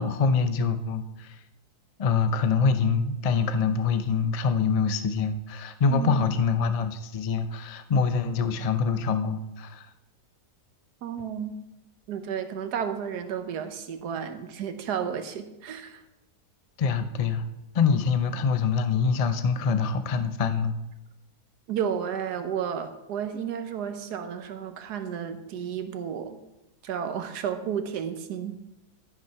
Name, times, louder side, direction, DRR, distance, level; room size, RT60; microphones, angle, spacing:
voice 1, 0.0-1.4 2.0-9.9 16.8-17.4 17.7-20.7, left 5 dB, 70° left, 9 dB, 0.3 m, -25 dB
voice 2, 5.9-6.3 11.0-11.5 12.1-16.0 21.7-26.4 26.8-28.6, right 8 dB, 80° right, 9 dB, 1.5 m, -32 dB
12.5 x 6.1 x 5.7 m, 0.95 s
omnidirectional pair, 1.7 m